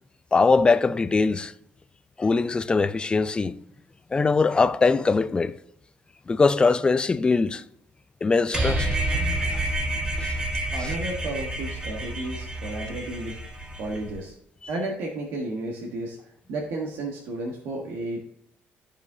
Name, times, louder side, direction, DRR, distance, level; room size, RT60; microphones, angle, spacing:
voice 1, 0.3-1.5 2.2-3.5 4.1-5.6 6.3-7.6 8.2-9.0 10.8-10.9 14.6-14.7, left 4 dB, 20° left, 0.4 m, -21 dB
sound 1, 8.5-14.1, right 1 dB, 20° right, 1.4 m, -28 dB
voice 2, 10.7-13.3 13.8-14.3 14.7-16.2 16.5-18.3, right 2 dB, 80° right, 1.3 m, -32 dB
13.5 x 5.0 x 2.7 m
cardioid pair, 115°, 4 cm